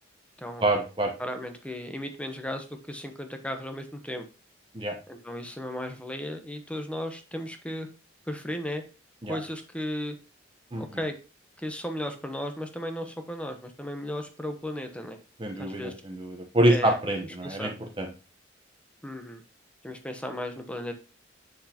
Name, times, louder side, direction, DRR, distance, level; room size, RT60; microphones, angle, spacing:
voice 1, 0.6-1.1 4.7-4.9 9.2-9.4 10.7-10.8 15.4-18.1, right 1 dB, 25° right, 2 dB, 0.9 m, -26 dB
voice 2, 1.2-4.2 5.1-7.9 8.3-8.8 9.3-10.2 10.8-11.1 11.6-15.2 15.6-15.9 16.7-17.0 17.4-17.7 19.0-19.4 19.8-20.9, left 1 dB, 5° left, 6 dB, 0.9 m, -35 dB
7.9 x 6.5 x 2.9 m, 0.33 s
head